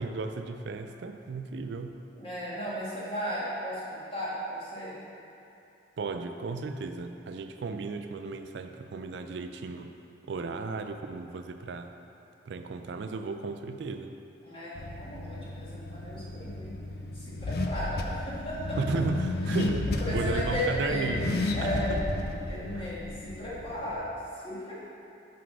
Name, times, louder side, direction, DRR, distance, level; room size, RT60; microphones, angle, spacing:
voice 1, 0.0-1.9 6.0-9.9 10.2-11.9 12.5-14.1 18.8-22.0 22.8-22.9, right 3 dB, 70° right, 7 dB, 0.4 m, -34 dB
voice 2, 2.1-5.0 14.4-16.7 17.1-18.8 19.5-19.6 20.0-22.0 22.4-24.7, equal, 30° left, -8 dB, 1.6 m, -35 dB
Car / Accelerating revving vroom, 14.7-23.9, left 2 dB, 55° left, 0.5 m, -33 dB
5.9 x 4.7 x 6.0 m, 2.7 s
head